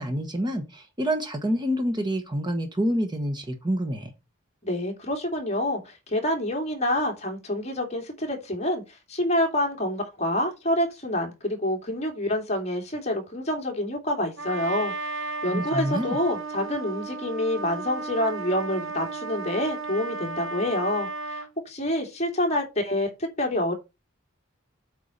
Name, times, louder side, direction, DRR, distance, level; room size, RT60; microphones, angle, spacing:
voice 1, 0.0-4.1 15.5-16.2, equal, 20° right, 1.2 m, -27 dB
voice 2, 4.6-23.7, left 1 dB, 35° left, 2.9 m, -27 dB
Trumpet, 14.4-21.5, right 3 dB, 80° right, 4.6 m, -34 dB
8.3 x 4.6 x 6.7 m
head